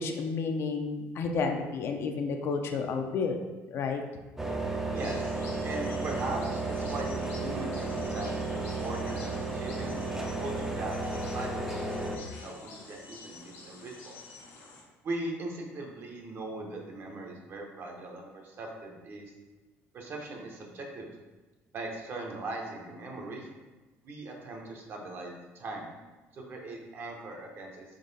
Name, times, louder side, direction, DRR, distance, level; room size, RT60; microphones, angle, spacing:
voice 1, 0.0-3.4 3.7-4.0, left 4 dB, 55° left, 4 dB, 0.5 m, -31 dB
sound 1, 4.4-12.2, right 2 dB, 10° right, 0.4 m, -33 dB
voice 2, 4.9-9.9 10.4-14.4 15.0-19.3 19.9-21.1 21.7-23.5 24.0-25.9 26.3-27.8, right 2 dB, 45° right, 1 dB, 0.8 m, -40 dB
sound 2, 5.0-14.8, left 3 dB, 75° left, 1.1 m, -49 dB
3.8 x 3.0 x 4.0 m, 1.2 s
cardioid pair, 125°, 5 cm